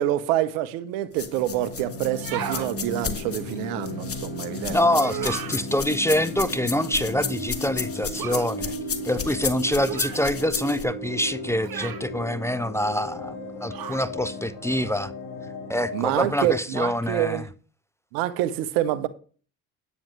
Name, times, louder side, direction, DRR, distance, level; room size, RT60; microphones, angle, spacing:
voice 1, 0.0-4.8 15.9-17.5 18.1-19.1, right 13 dB, 85° right, 0.9 m, -26 dB
sound 1, 1.1-16.1, left 2 dB, 70° left, 4.6 m, -35 dB
sound 2, 1.2-10.8, left 6 dB, 30° left, 1.5 m, -33 dB
sound 3, 2.1-2.7 4.9-5.6 8.2-8.5 9.9-10.3 11.6-12.1 13.7-14.1, right 10 dB, 55° right, 1.5 m, -33 dB
voice 2, 4.7-8.8 9.0-13.4 13.6-15.1 15.7-17.4, left 1 dB, 5° left, 0.6 m, -25 dB
9.8 x 8.7 x 3.2 m
hypercardioid pair, 60°, 43 cm